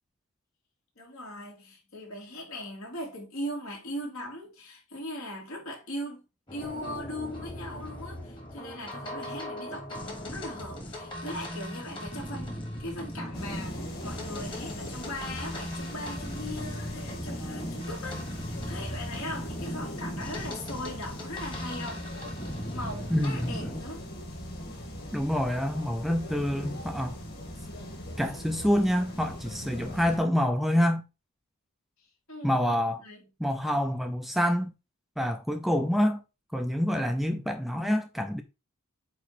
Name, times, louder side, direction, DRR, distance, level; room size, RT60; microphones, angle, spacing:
voice 1, 1.0-6.2 6.5-22.0 22.7-24.1 32.3-32.7 33.0-33.2, left 1 dB, 75° left, 3.2 m, -39 dB
sound 1, 6.5-23.8, equal, 20° left, 1.4 m, -38 dB
sound 2, 13.3-30.2, left 1 dB, 45° left, 2.4 m, -40 dB
voice 2, 23.1-23.8 25.1-27.2 28.2-31.0 32.4-33.0 33.4-34.7 35.2-36.2 36.5-38.4, equal, ahead, 0.4 m, -27 dB
8.4 x 3.0 x 4.3 m
head